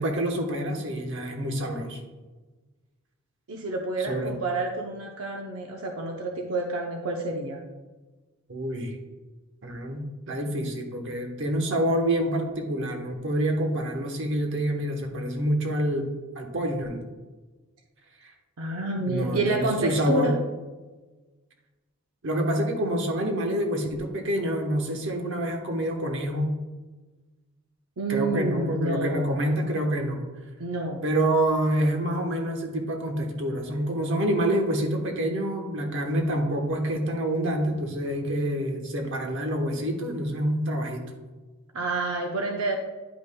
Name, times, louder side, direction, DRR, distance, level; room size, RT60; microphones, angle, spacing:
voice 1, 0.0-2.0 4.0-4.3 8.5-9.0 9.6-16.1 16.4-17.0 18.2-18.3 19.1-20.3 22.2-26.5 28.1-30.2 31.0-41.1, right 1 dB, 60° right, 3 dB, 1.0 m, -27 dB
voice 2, 3.5-7.6 18.6-20.4 28.0-29.4 30.6-31.0 41.7-42.8, right 2 dB, 80° right, 1 dB, 0.7 m, -29 dB
10.0 x 5.3 x 2.2 m, 1.3 s
head